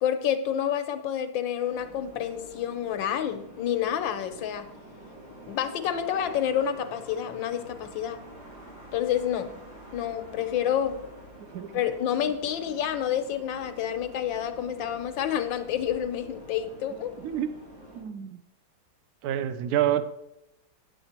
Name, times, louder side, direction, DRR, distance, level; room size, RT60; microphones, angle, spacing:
voice 1, 0.0-4.7 5.5-8.2 8.9-9.5 9.9-11.0 11.7-17.1, left 9 dB, 90° left, 9 dB, 1.6 m, -29 dB
sound 1, 1.6-18.0, right 1 dB, 90° right, 4.1 m, -47 dB
voice 2, 17.2-17.5 17.9-18.4 19.2-20.1, right 11 dB, 65° right, 12 dB, 1.0 m, -27 dB
9.6 x 7.8 x 4.3 m, 0.87 s
omnidirectional pair, 2.0 m